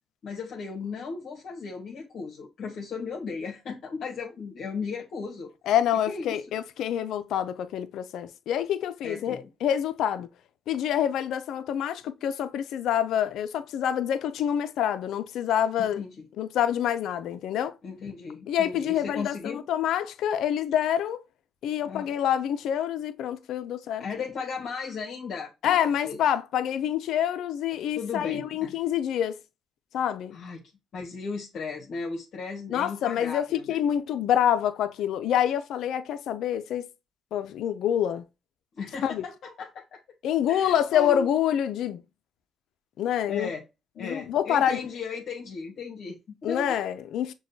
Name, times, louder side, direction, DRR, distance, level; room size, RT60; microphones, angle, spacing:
voice 1, 0.2-5.5 5.9-6.4 9.0-9.4 15.8-16.1 17.8-19.6 21.8-22.1 24.0-26.2 27.9-28.7 30.3-30.6 30.9-33.8 38.7-40.0 40.5-41.3 43.3-43.7 44.0-46.8, left 5 dB, 65° left, 1.1 m, -36 dB
voice 2, 5.7-10.3 10.7-16.0 16.4-17.8 18.5-21.2 21.6-24.0 25.6-29.4 29.9-30.4 32.7-36.9 37.3-38.3 39.0-39.2 40.2-42.0 43.0-43.5 44.0-44.8 46.4-47.3, left 10 dB, 80° left, 0.4 m, -27 dB
6.2 x 2.2 x 2.6 m
cardioid pair, 90°, 0 cm